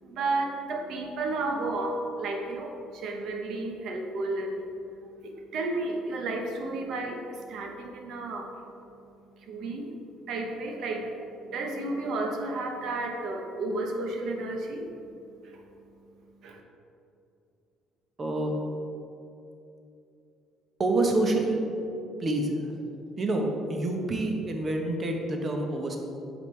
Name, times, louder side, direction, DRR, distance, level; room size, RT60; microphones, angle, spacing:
voice 1, 0.0-4.8 5.0-8.6 9.3-9.9 10.3-14.9 15.4-15.6 16.4-16.6, right 2 dB, 65° right, 3 dB, 0.9 m, -32 dB
voice 2, 18.2-18.5 20.8-21.6 22.2-22.6 23.2-26.0, right 2 dB, 40° right, 2 dB, 1.0 m, -27 dB
7.0 x 5.1 x 3.3 m, 2.7 s
supercardioid pair, 75°, 0 cm